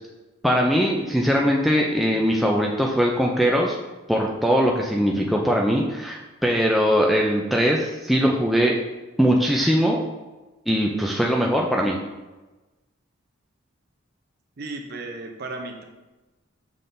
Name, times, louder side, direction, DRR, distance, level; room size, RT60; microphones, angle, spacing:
voice 1, 0.4-3.8 4.1-8.8 9.2-10.0 10.7-12.0, equal, ahead, -2 dB, 0.3 m, -21 dB
voice 2, 14.6-15.8, right 2 dB, 50° right, 3 dB, 0.6 m, -34 dB
5.8 x 3.5 x 2.6 m, 1.1 s
head